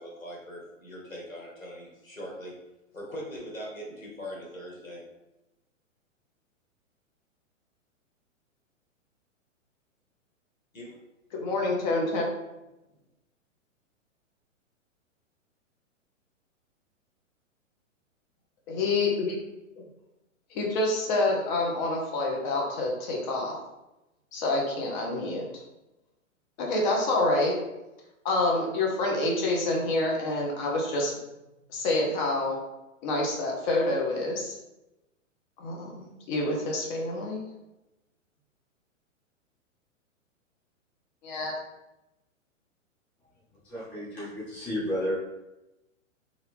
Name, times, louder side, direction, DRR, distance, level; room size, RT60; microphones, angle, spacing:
voice 1, 0.0-2.5 2.9-5.0 10.7-11.0, equal, 90° left, -3 dB, 1.3 m, -41 dB
voice 2, 11.3-12.2 18.7-19.4 19.8-19.9 20.5-23.6 24.3-25.6 26.6-27.6 28.2-31.1 31.7-32.6 33.0-34.5 35.6-37.5 41.2-41.5, left 2 dB, 35° left, -1 dB, 0.8 m, -27 dB
voice 3, 43.6-45.1, equal, 5° left, -9 dB, 0.4 m, -32 dB
2.7 x 2.5 x 3.2 m, 0.97 s
hypercardioid pair, 120°, 39 cm